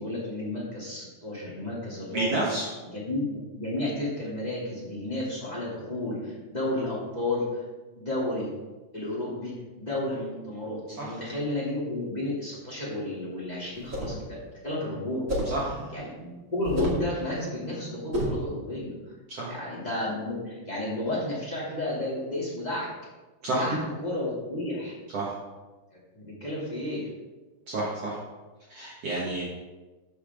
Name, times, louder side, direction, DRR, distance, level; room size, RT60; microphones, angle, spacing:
voice 1, 0.0-2.4 2.8-7.6 7.9-8.5 8.9-14.2 14.6-15.2 15.9-18.9 19.5-22.9 23.4-24.9 25.9-27.1, left 1 dB, 15° left, -7 dB, 1.5 m, -32 dB
voice 2, 2.1-2.7 11.0-11.1 15.5-15.8 19.3-19.5 23.4-23.7 25.1-25.3 27.7-28.2 28.7-29.4, right 2 dB, 75° right, -5 dB, 1.4 m, -30 dB
sound 1, 13.7-14.2 15.3-15.6 16.6-17.1 18.1-18.5, equal, 50° right, 0.9 m, -29 dB
14.0 x 7.0 x 3.6 m, 1.2 s
omnidirectional pair, 5.4 m